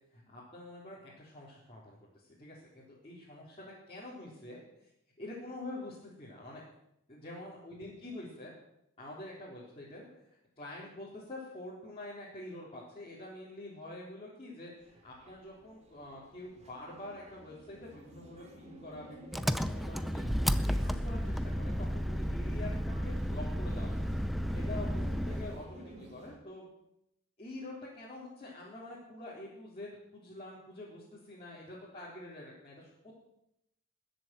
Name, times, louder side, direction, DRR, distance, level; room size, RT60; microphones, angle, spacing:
voice 1, 0.1-4.9 5.2-6.6 7.1-8.5 9.0-10.1 10.6-23.9 24.5-26.7 27.4-33.1, left 1 dB, 25° left, -8 dB, 4.0 m, -46 dB
sound 1, 14.8-26.4, right 1 dB, 30° right, 2.6 m, -52 dB
Engine, 19.3-25.6, equal, ahead, 0.6 m, -32 dB
21.0 x 7.8 x 7.8 m, 0.80 s
head